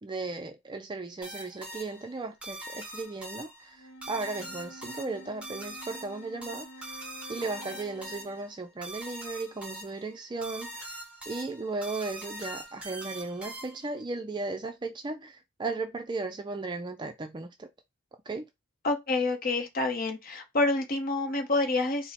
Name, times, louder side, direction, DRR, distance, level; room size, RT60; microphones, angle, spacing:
voice 1, 0.0-11.0 11.3-17.7 18.3-18.5, right 3 dB, 20° right, 0.3 m, -36 dB
sound 1, 1.2-14.0, right 1 dB, 5° right, 0.8 m, -43 dB
Wind instrument woodwind instrument, 3.7-8.5, equal, 90° left, 0.9 m, -49 dB
voice 2, 18.8-22.1, left 2 dB, 45° left, 0.8 m, -28 dB
4.3 x 2.1 x 4.1 m
head